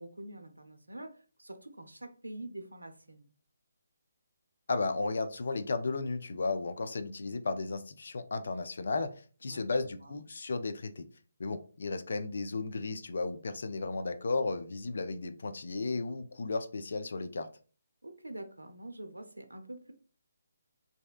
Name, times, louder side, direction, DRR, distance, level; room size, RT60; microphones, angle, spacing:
voice 1, 0.0-3.3 9.4-10.2 18.0-19.9, right 1 dB, 80° right, 7 dB, 0.4 m, -46 dB
voice 2, 4.7-9.1 9.4-11.0 11.4-17.5, left 3 dB, 60° left, 9 dB, 0.4 m, -34 dB
3.1 x 2.7 x 2.3 m, 0.38 s
figure-of-eight pair, 145°, 0 cm